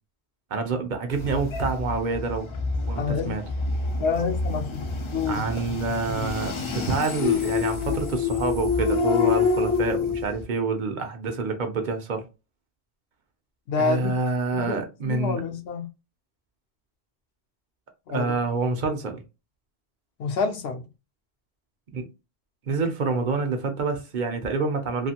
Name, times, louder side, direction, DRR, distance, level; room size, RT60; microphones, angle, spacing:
voice 1, 0.5-2.5 2.9-3.4 5.3-12.2 13.8-15.4 18.1-19.2 21.9-22.1 22.7-25.1, right 4 dB, 55° right, 0.6 m, -27 dB
sound 1, 1.1-10.4, left 5 dB, 50° left, 0.3 m, -27 dB
voice 2, 3.0-3.3 4.0-4.9 5.1-5.5 13.7-14.1 14.5-14.8 15.1-15.9 18.1-18.3 20.2-20.9, left 4 dB, 75° left, 0.8 m, -27 dB
2.5 x 2.4 x 2.7 m
omnidirectional pair, 1.1 m